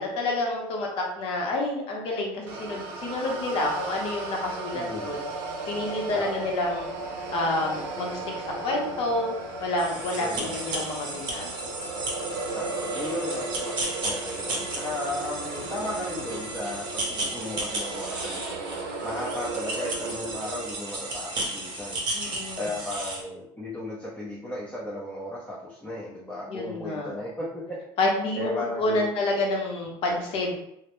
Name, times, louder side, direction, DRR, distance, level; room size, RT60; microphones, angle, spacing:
voice 1, 0.0-5.2 5.7-6.9 7.3-8.2 8.6-11.7 22.1-22.7 26.5-27.1 28.0-30.5, left 2 dB, 55° left, -1 dB, 0.7 m, -28 dB
sound 1, 2.5-20.7, right 3 dB, 90° right, 0.5 m, -35 dB
voice 2, 4.7-5.1 6.1-6.5 10.2-10.5 12.6-18.7 19.0-27.8 28.4-29.1, left 1 dB, 10° left, -7 dB, 0.5 m, -35 dB
sound 2, 9.8-23.2, right 2 dB, 40° right, 0.7 m, -34 dB
2.1 x 2.0 x 2.9 m, 0.77 s
supercardioid pair, 120°, 11 cm